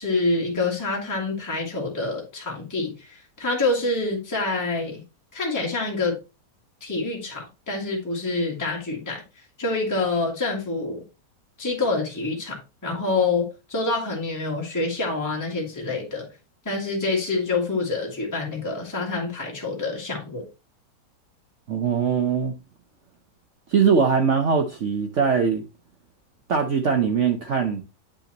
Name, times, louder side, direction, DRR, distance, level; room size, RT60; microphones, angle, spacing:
voice 1, 0.0-5.0 5.3-6.2 6.8-9.2 9.6-11.0 11.6-16.3 16.7-20.5, left 3 dB, 10° left, 1.8 m, -26 dB
voice 2, 21.7-22.5 23.7-25.6 26.5-27.8, right 6 dB, 55° right, 0.9 m, -21 dB
8.6 x 5.5 x 2.9 m
omnidirectional pair, 1.9 m